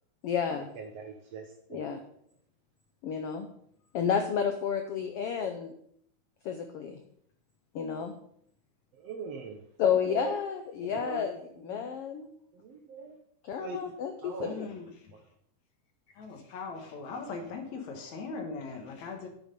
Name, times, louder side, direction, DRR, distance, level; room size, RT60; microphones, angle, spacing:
voice 1, 0.2-0.7 1.7-2.0 3.0-3.5 3.9-5.7 6.4-7.0 7.7-8.1 9.8-12.3 13.4-14.5, left 7 dB, 85° left, 6 dB, 1.3 m, -31 dB
voice 2, 0.7-1.9 8.9-10.4 10.8-11.3 11.6-11.9 12.5-13.2 13.6-13.8 14.2-14.6 15.1-15.2, right 4 dB, 65° right, 5 dB, 1.7 m, -41 dB
voice 3, 14.4-15.1 16.2-19.3, left 4 dB, 60° left, 4 dB, 2.5 m, -40 dB
9.5 x 8.9 x 5.3 m, 0.68 s
omnidirectional pair, 3.8 m